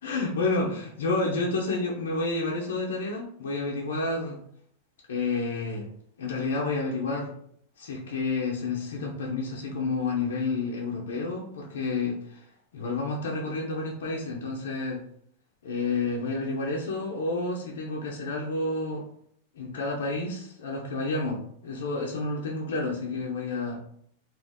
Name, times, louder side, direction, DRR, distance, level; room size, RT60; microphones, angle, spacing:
voice 1, 0.0-4.4 5.1-5.9 6.2-7.3 7.8-12.4 12.7-15.0 15.6-19.1 19.6-23.8, left 3 dB, 85° left, -2 dB, 0.5 m, -30 dB
2.4 x 2.0 x 3.5 m, 0.65 s
supercardioid pair, 135°, 0 cm